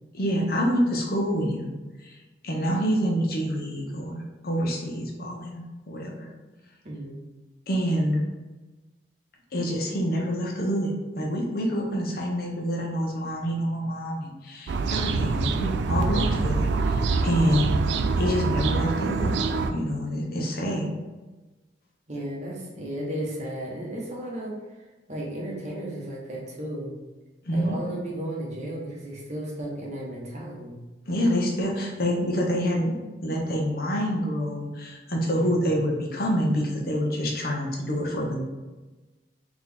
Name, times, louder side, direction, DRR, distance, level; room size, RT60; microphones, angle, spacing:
voice 1, 0.1-1.7 2.0-2.2 2.4-6.3 7.7-8.2 9.5-17.8 18.2-19.4 19.7-20.9 27.5-27.8 31.1-33.0 33.2-38.4, equal, 55° left, -1 dB, 0.8 m, -27 dB
voice 2, 6.8-7.2 22.1-24.6 25.1-27.0 27.5-30.8 35.3-36.1, right 1 dB, 40° right, -3 dB, 0.9 m, -34 dB
sound 1, 14.7-19.7, right 4 dB, 75° right, 0.3 m, -25 dB
4.1 x 3.0 x 3.4 m, 1.2 s
head